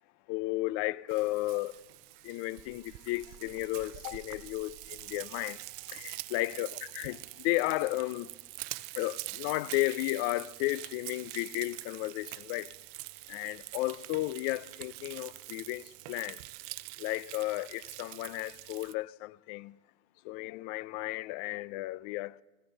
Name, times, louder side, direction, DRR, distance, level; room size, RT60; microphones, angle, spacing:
voice 1, 0.3-1.8 2.2-8.3 8.9-12.7 13.3-16.4 17.0-19.8 20.2-22.4, left 19 dB, 40° left, 0.4 m, -34 dB
Frying (food), 1.1-18.9, right 22 dB, 40° right, 0.5 m, -45 dB
17.5 x 15.5 x 3.9 m
hypercardioid pair, 110°, 38 cm